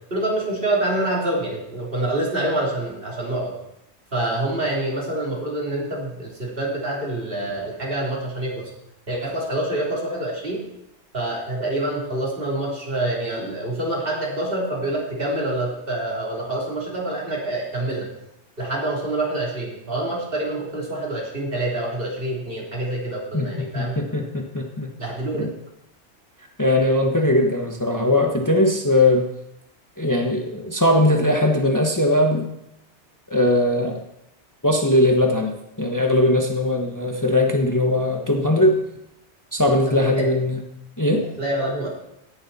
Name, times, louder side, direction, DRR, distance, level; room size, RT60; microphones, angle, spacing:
voice 1, 0.1-3.6 4.1-8.7 9.1-10.6 11.1-18.1 18.6-23.9 25.0-25.5 39.9-40.3 41.4-41.9, right 1 dB, 50° right, -3 dB, 3.7 m, -26 dB
voice 2, 23.3-24.9 25.4-25.5 26.6-29.3 30.0-32.5 33.3-34.0 34.6-38.8 39.5-40.6 41.0-41.2, left 1 dB, 15° left, 2 dB, 1.2 m, -20 dB
17.0 x 10.5 x 4.2 m, 0.84 s
omnidirectional pair, 1.2 m